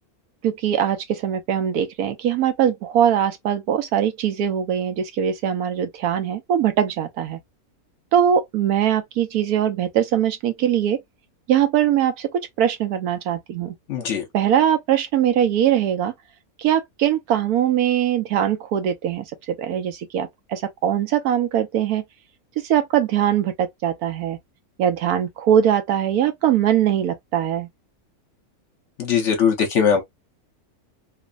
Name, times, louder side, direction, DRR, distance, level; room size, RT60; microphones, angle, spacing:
voice 1, 0.4-7.4 8.1-11.0 11.5-13.7 14.3-16.1 16.6-22.0 22.6-24.4 24.8-27.7, right 10 dB, 85° right, 1.2 m, -21 dB
voice 2, 13.9-14.2 29.0-30.0, left 7 dB, 60° left, 1.0 m, -20 dB
3.1 x 2.1 x 2.3 m
omnidirectional pair, 1.6 m